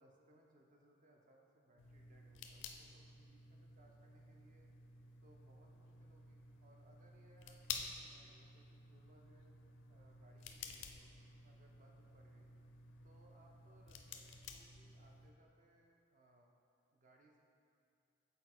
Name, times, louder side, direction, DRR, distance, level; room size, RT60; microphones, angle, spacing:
voice 1, 0.0-4.7 5.2-9.5 9.9-12.5 13.0-16.5 16.9-17.4, right 1 dB, 40° right, 0 dB, 0.5 m, -69 dB
sound 1, 1.8-15.3, left 6 dB, 75° left, 0.4 m, -52 dB
6.7 x 4.2 x 4.1 m, 2.4 s
head